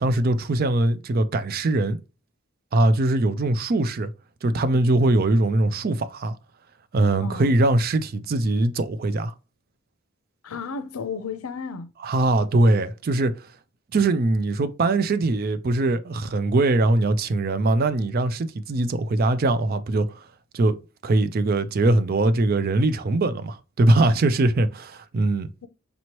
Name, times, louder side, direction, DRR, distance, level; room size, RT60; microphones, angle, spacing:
voice 1, 0.0-2.0 2.7-4.1 4.4-6.4 6.9-9.3 12.0-13.4 13.9-20.2 20.5-20.8 21.0-25.5, right 2 dB, 45° right, 0.4 m, -21 dB
voice 2, 7.2-7.5 10.4-11.9, left 5 dB, 90° left, 0.6 m, -33 dB
5.2 x 3.0 x 2.9 m
head